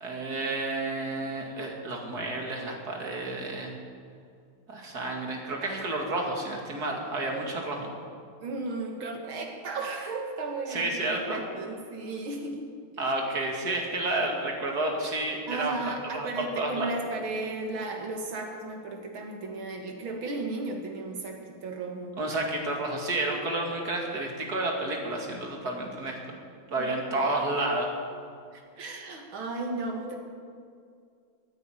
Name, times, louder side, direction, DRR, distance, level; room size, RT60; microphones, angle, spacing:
voice 1, 0.0-3.7 4.7-7.9 10.7-11.4 13.0-16.9 22.2-26.4 26.7-27.9, right 2 dB, 50° right, 1 dB, 2.8 m, -30 dB
voice 2, 8.4-12.6 13.0-13.2 15.5-22.2 26.8-26.9 28.5-30.2, right 3 dB, 75° right, 2 dB, 2.7 m, -35 dB
14.5 x 9.7 x 9.2 m, 2.3 s
omnidirectional pair, 2.2 m